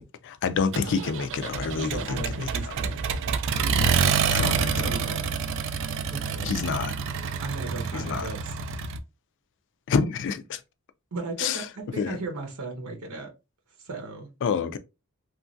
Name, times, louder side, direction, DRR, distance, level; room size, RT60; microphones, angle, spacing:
voice 1, 0.0-2.5 4.3-5.0 6.4-6.9 7.9-8.3 9.9-10.6 11.4-11.7 12.0-12.2 14.4-14.8, left 5 dB, 55° left, 0.4 m, -28 dB
Accelerating revving vroom, 0.7-9.0, right 6 dB, 60° right, 0.3 m, -28 dB
voice 2, 1.7-3.1 3.6-5.2 5.5-6.5 7.4-8.5 11.1-13.3 13.8-14.3, right 3 dB, 85° right, 0.8 m, -36 dB
2.9 x 2.4 x 2.5 m
head